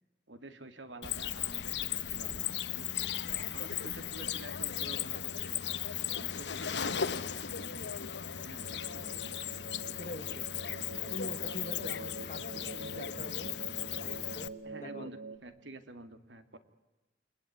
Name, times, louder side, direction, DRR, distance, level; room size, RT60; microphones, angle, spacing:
voice 1, 0.3-2.9 3.5-5.6 6.2-7.8 8.4-8.7 14.6-16.6, right 2 dB, 90° right, 9 dB, 2.4 m, -49 dB
Cricket, 1.0-14.5, left 9 dB, 75° left, 1.0 m, -36 dB
sound 1, 8.6-15.4, right 2 dB, 60° right, 3.1 m, -46 dB
voice 2, 10.0-10.4 11.1-13.5 13.8-14.5 14.8-15.1, left 1 dB, 45° left, 10 dB, 1.6 m, -44 dB
28.5 x 21.0 x 9.6 m, 1.1 s
head